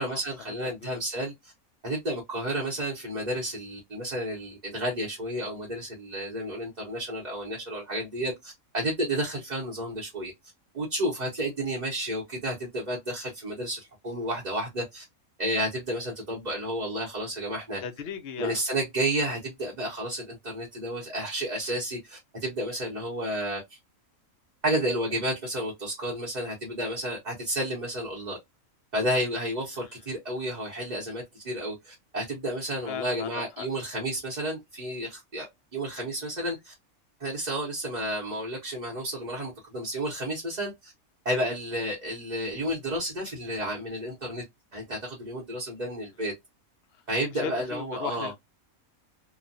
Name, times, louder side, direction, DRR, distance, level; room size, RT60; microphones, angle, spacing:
voice 1, 0.0-1.5 1.8-10.3 10.7-15.0 15.4-17.8 18.4-23.8 24.6-28.4 28.9-36.7 37.2-40.9 41.2-44.4 44.7-46.3 47.1-48.3, right 1 dB, 35° right, 0.9 m, -31 dB
voice 2, 0.6-1.0 17.8-18.6 29.8-29.9 32.9-33.3 33.6-33.7 46.9-47.0 47.3-48.3, left 7 dB, 55° left, 0.7 m, -37 dB
3.0 x 2.2 x 2.5 m
omnidirectional pair, 1.5 m